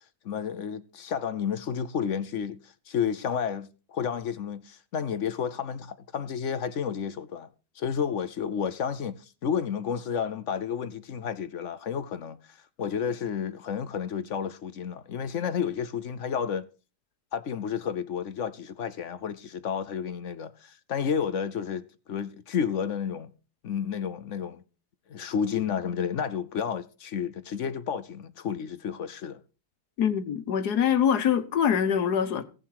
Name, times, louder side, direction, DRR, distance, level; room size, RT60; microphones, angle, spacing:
voice 1, 0.2-7.5 7.8-16.6 17.3-21.8 22.1-23.3 23.6-24.6 25.1-29.4, left 7 dB, 60° left, 0.9 m, -31 dB
voice 2, 30.0-32.4, left 8 dB, 80° left, 1.7 m, -24 dB
16.5 x 7.3 x 4.7 m
omnidirectional pair, 1.7 m